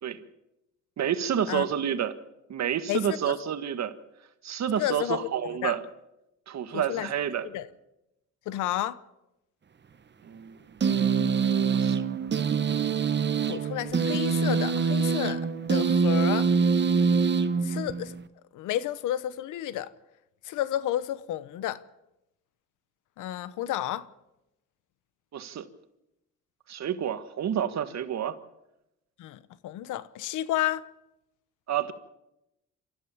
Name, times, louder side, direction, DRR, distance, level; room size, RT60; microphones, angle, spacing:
voice 1, 1.0-2.1 2.5-3.9 4.4-5.8 6.5-7.5 10.2-10.6 11.7-11.9 25.3-25.7 26.7-28.3 31.7-31.9, right 9 dB, 60° right, 1.8 m, -29 dB
voice 2, 2.9-3.3 4.8-5.8 6.7-7.1 7.4-7.7 8.5-9.0 13.4-16.5 17.6-18.1 18.5-19.9 20.4-21.8 23.2-24.1 29.2-30.9, left 13 dB, 90° left, 1.1 m, -31 dB
sound 1, 10.8-18.2, right 5 dB, 35° right, 1.1 m, -25 dB
27.5 x 14.0 x 7.2 m
cardioid pair, 90°, 30 cm